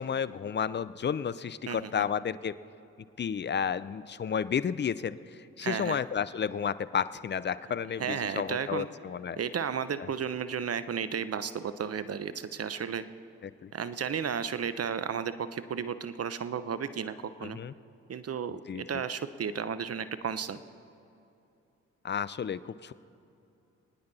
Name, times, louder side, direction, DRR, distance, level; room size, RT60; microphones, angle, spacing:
voice 1, 0.0-2.6 3.2-9.4 13.4-13.7 17.4-17.7 18.7-18.8 22.0-22.9, left 7 dB, 30° left, 16 dB, 0.5 m, -32 dB
voice 2, 1.7-2.0 5.6-6.0 8.0-8.9 9.4-13.0 13.7-17.6 18.1-20.6, right 7 dB, 40° right, 13 dB, 0.9 m, -33 dB
25.0 x 9.6 x 4.2 m, 2.7 s
hypercardioid pair, 45°, 36 cm